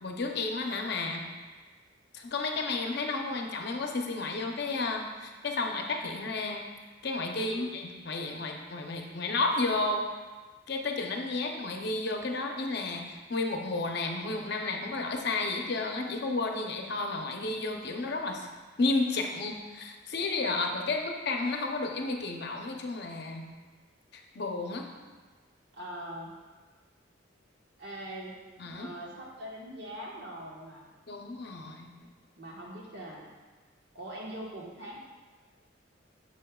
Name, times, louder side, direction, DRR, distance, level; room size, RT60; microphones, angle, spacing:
voice 1, 0.0-1.2 2.1-6.6 7.0-10.0 10.7-18.5 18.8-23.5 24.1-24.9 28.6-28.9 31.1-31.9, left 3 dB, 55° left, 2 dB, 0.7 m, -32 dB
voice 2, 7.3-7.7 20.8-20.9 25.7-26.3 27.8-28.4 28.7-30.9 32.4-33.3 33.9-35.0, right 1 dB, 60° right, -3 dB, 1.4 m, -42 dB
8.5 x 6.5 x 2.3 m, 1.4 s
head